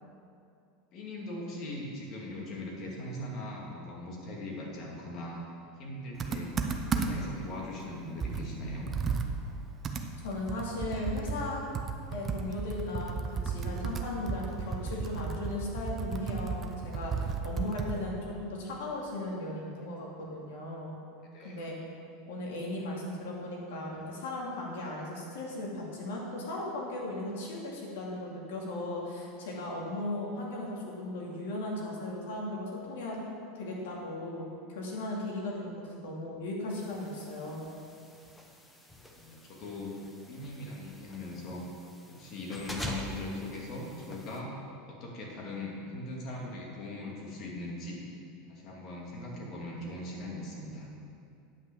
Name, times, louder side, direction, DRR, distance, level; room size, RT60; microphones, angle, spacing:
voice 1, 0.9-5.4 5.8-6.6 6.9-8.9 21.3-21.6 39.2-39.9 40.3-41.6 42.1-44.5 44.8-48.0 48.5-50.9, left 1 dB, 40° left, -2 dB, 2.4 m, -40 dB
Computer keyboard, 6.2-7.4 7.8-7.9 8.2-18.1, right 5 dB, 25° right, 0.7 m, -34 dB
voice 2, 10.2-11.7 12.1-20.9 21.4-21.7 22.2-33.2 33.5-37.7, left 1 dB, 80° left, -3 dB, 2.5 m, -37 dB
sound 1, 36.7-44.4, left 1 dB, 5° left, 1.0 m, -45 dB
9.6 x 5.8 x 7.0 m, 2.5 s
supercardioid pair, 140°, 0 cm